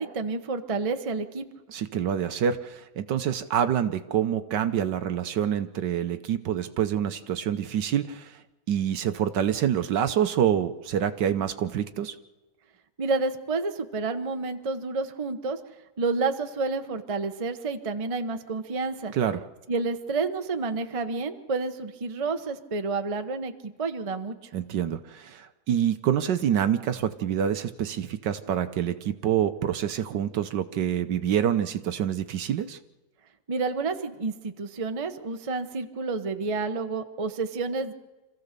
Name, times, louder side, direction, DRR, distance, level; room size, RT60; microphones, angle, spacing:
voice 1, 0.0-1.4 13.0-15.6 16.0-19.1 19.7-24.3 33.5-37.9, right 3 dB, 25° right, 7 dB, 0.7 m, -29 dB
voice 2, 1.7-8.4 8.7-12.2 19.1-19.4 24.5-32.8, right 9 dB, 65° right, 10 dB, 1.4 m, -26 dB
26.5 x 15.0 x 6.7 m, 1.2 s
omnidirectional pair, 2.2 m